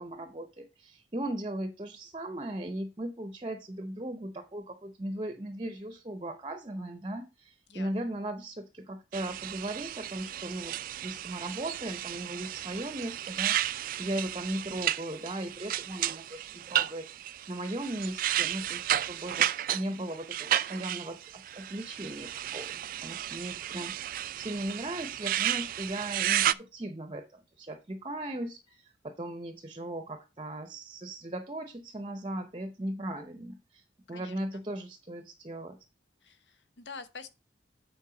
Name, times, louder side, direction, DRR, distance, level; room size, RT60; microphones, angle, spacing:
voice 1, 0.0-10.7 11.0-22.7 23.0-33.8 34.1-35.8, right 1 dB, 30° right, 0.7 m, -38 dB
sound 1, 9.1-26.5, right 12 dB, 50° right, 0.3 m, -33 dB
voice 2, 36.2-37.3, left 5 dB, 80° left, 1.0 m, -46 dB
8.4 x 4.5 x 5.0 m
head